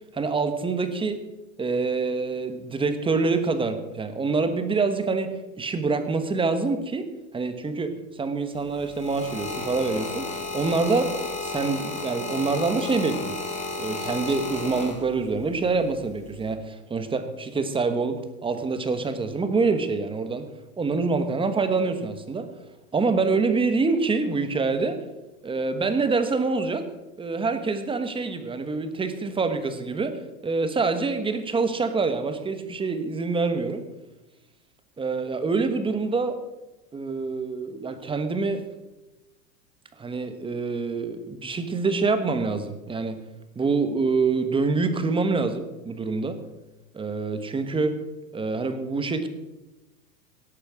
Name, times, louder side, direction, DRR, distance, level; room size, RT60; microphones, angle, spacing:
voice 1, 0.1-1.2 1.6-5.3 5.6-7.1 7.3-10.3 10.5-11.1 11.4-13.4 13.8-20.5 20.8-22.5 22.9-25.0 25.4-26.9 27.2-30.2 30.4-33.8 35.0-36.4 36.9-38.6 40.0-43.2 43.5-46.4 46.9-48.0 48.3-49.3, right 4 dB, 10° right, 9 dB, 1.2 m, -26 dB
sound 1, 8.5-15.4 16.2-16.5, left 3 dB, 15° left, 2.6 m, -33 dB
17.5 x 8.4 x 6.3 m, 1.0 s
supercardioid pair, 135°, 48 cm